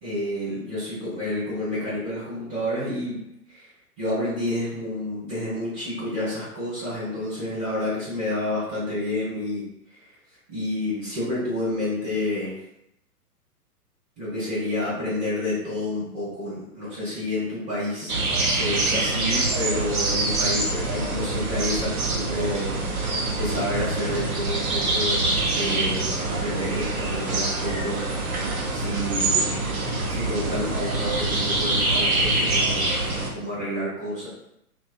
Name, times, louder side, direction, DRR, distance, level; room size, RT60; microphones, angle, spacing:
voice 1, 0.0-3.2 3.5-3.7 4.0-9.6 10.5-12.5 14.2-18.1 18.4-22.7 23.4-25.2 25.5-28.0 28.7-29.5 30.1-34.3, left 1 dB, 5° right, -15 dB, 0.4 m, -29 dB
sound 1, 18.1-33.3, right 2 dB, 65° right, 0.7 m, -25 dB
2.4 x 2.1 x 2.4 m, 0.78 s
figure-of-eight pair, 115°, 47 cm